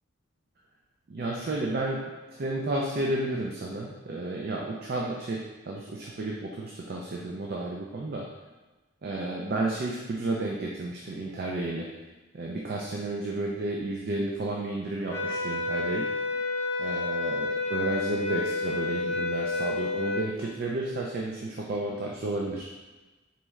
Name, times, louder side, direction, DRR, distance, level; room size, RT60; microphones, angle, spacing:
voice 1, 1.1-2.1 2.4-8.3 9.0-11.9 12.3-16.1 16.8-22.7, right 2 dB, 45° right, -1 dB, 0.4 m, -32 dB
sound 1, 15.1-20.3, left 3 dB, 50° left, 0.6 m, -30 dB
4.0 x 3.1 x 3.5 m, 1.2 s
head